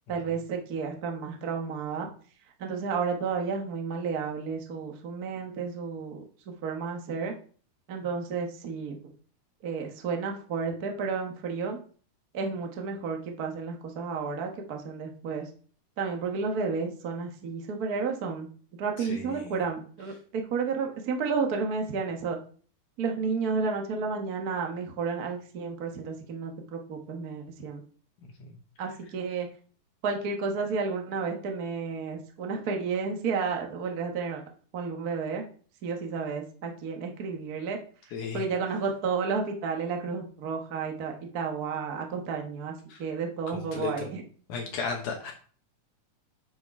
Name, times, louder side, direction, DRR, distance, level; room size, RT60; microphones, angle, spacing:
voice 1, 0.1-2.1 2.6-6.2 6.6-7.3 7.9-9.0 9.6-11.8 12.3-15.5 16.0-18.5 18.8-22.4 23.0-27.8 28.8-29.5 30.0-34.4 34.7-35.4 35.8-37.8 38.3-42.7 43.0-44.2, right 5 dB, 60° right, 2 dB, 0.9 m, -31 dB
voice 2, 19.0-19.6 38.1-38.4 42.9-43.0 43.7-44.1 44.5-45.3, left 5 dB, 75° left, 1 dB, 2.6 m, -34 dB
9.3 x 5.0 x 4.7 m, 0.43 s
omnidirectional pair, 3.7 m